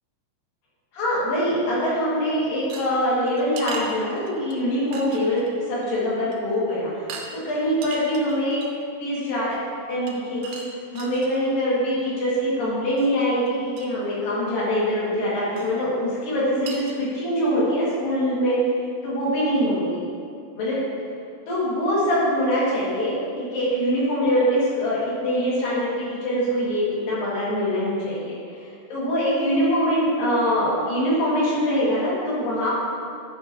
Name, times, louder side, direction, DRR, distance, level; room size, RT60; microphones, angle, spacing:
voice 1, 0.9-5.4 5.7-7.0 7.3-9.6 9.9-10.6 10.9-18.6 19.0-20.0 20.6-20.8 21.5-28.3 28.9-32.7, equal, 55° left, -8 dB, 3.1 m, -23 dB
sound 1, 2.7-4.5 4.9-5.5 5.8-6.0 6.3-6.6 7.1-7.3 7.7-8.8 10.1-11.4 13.0-13.1 13.5-13.6 13.8-13.9 15.6-15.7 16.2-16.3 16.7-17.0, right 4 dB, 85° right, 2.3 m, -38 dB
12.0 x 6.1 x 2.8 m, 2.5 s
omnidirectional pair, 5.6 m